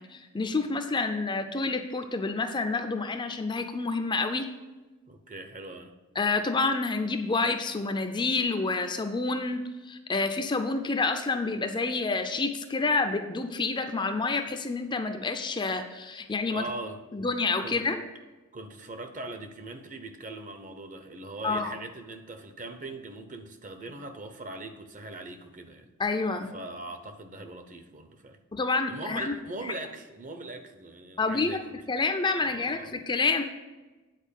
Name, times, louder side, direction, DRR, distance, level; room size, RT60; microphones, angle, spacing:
voice 1, 0.1-4.5 6.2-16.6 17.1-18.0 21.4-21.7 26.0-26.5 28.5-29.3 29.6-29.7 31.2-31.6 31.9-33.4, left 3 dB, 20° left, 7 dB, 0.5 m, -28 dB
voice 2, 5.1-5.9 16.5-17.0 17.6-17.8 18.5-25.9 26.5-28.4 28.9-31.7 32.4-32.9, right 2 dB, 35° right, 7 dB, 0.8 m, -41 dB
9.1 x 4.5 x 7.3 m, 1.2 s
head